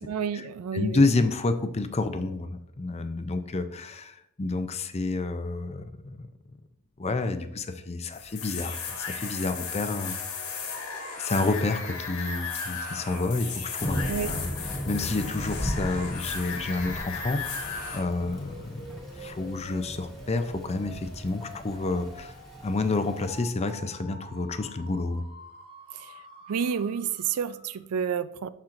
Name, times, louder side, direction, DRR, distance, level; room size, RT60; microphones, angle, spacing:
voice 1, 0.0-1.0 14.1-14.4 25.9-26.1 26.5-28.5, right 7 dB, 90° right, 0.4 m, -30 dB
voice 2, 0.7-6.3 7.0-10.4 11.2-14.5 14.9-22.3 22.6-25.2, left 3 dB, 30° left, 0.5 m, -29 dB
sound 1, 8.1-18.0, left 5 dB, 85° left, 1.6 m, -35 dB
Thunder / Rain, 13.8-23.4, equal, ahead, 1.7 m, -37 dB
sound 2, 18.0-27.9, right 1 dB, 25° right, 1.1 m, -48 dB
11.5 x 4.4 x 2.6 m
head